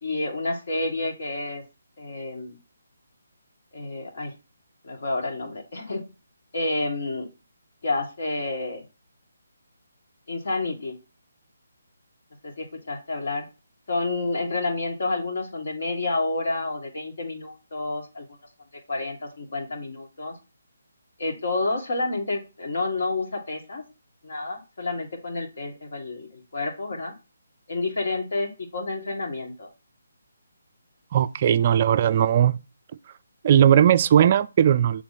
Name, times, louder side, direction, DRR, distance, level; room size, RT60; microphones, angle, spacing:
voice 1, 0.0-1.6 2.0-2.6 3.7-4.3 4.8-6.0 6.5-7.3 7.8-8.8 10.3-11.0 12.4-13.5 13.9-18.3 18.9-20.4 21.2-23.8 24.2-27.1 27.7-29.7, left 2 dB, 60° left, 2.1 m, -29 dB
voice 2, 31.1-32.6 33.4-35.0, right 9 dB, 35° right, 0.3 m, -18 dB
6.9 x 3.6 x 4.2 m
figure-of-eight pair, 155°, 0 cm